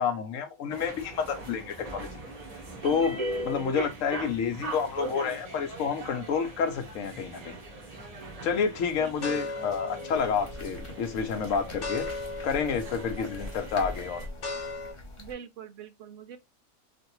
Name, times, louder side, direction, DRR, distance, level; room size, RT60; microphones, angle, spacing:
voice 1, 0.0-2.2 2.8-7.6 8.4-12.1 12.4-14.2, left 6 dB, 70° left, 1.0 m, -29 dB
sound 1, 0.7-14.3, right 2 dB, 30° right, 1.0 m, -40 dB
sound 2, 7.6-8.0 8.6-14.9, left 3 dB, 45° left, 1.0 m, -39 dB
voice 2, 9.0-9.5 13.1-13.3 15.2-16.4, right 8 dB, 70° right, 0.9 m, -43 dB
sound 3, 10.1-15.3, left 1 dB, 30° left, 0.7 m, -42 dB
3.4 x 2.5 x 2.9 m
omnidirectional pair, 1.5 m